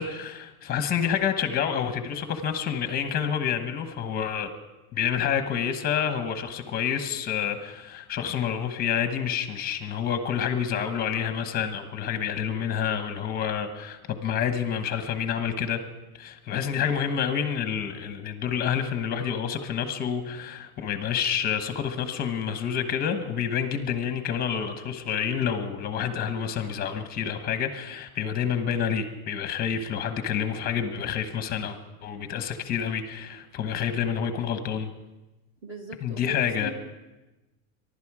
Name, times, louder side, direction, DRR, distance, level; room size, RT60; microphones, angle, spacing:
voice 1, 0.0-4.5 4.9-15.8 16.2-34.9 36.0-36.7, left 8 dB, 20° left, 8 dB, 1.1 m, -28 dB
voice 2, 35.6-36.7, right 1 dB, 30° right, 4 dB, 1.7 m, -39 dB
24.0 x 12.0 x 4.8 m, 1.1 s
supercardioid pair, 170°, 41 cm